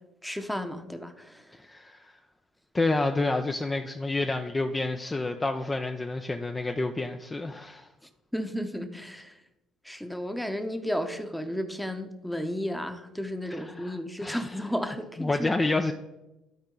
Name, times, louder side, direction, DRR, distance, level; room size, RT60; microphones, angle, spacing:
voice 1, 0.2-1.5 8.3-9.3 9.8-15.5, equal, 5° left, 8 dB, 0.9 m, -33 dB
voice 2, 1.6-2.1 2.7-7.9 13.5-14.6 15.2-15.9, left 2 dB, 25° left, 5 dB, 0.5 m, -29 dB
12.0 x 4.4 x 3.9 m, 0.98 s
hypercardioid pair, 60°, 0 cm